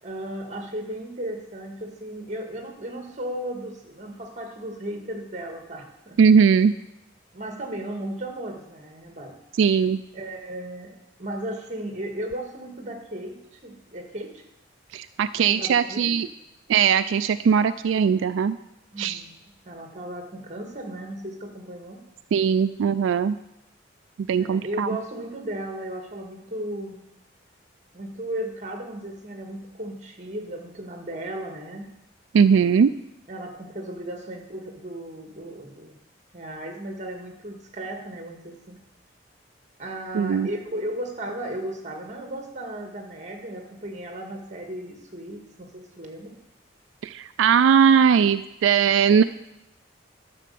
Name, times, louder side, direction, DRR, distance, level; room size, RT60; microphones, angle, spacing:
voice 1, 0.0-6.2 7.3-9.3 10.1-14.4 15.5-16.2 18.9-19.3 19.7-22.0 24.4-27.0 27.9-31.9 33.3-36.0 36.3-38.8 39.8-46.4, right 1 dB, 40° right, 3 dB, 1.8 m, -35 dB
voice 2, 6.2-6.7 9.6-10.0 14.9-16.3 16.7-18.6 19.0-19.2 22.3-23.4 24.2-25.0 32.3-32.9 40.1-40.5 47.0-49.2, right 7 dB, 85° right, 12 dB, 0.3 m, -19 dB
10.5 x 6.7 x 6.9 m, 0.86 s
head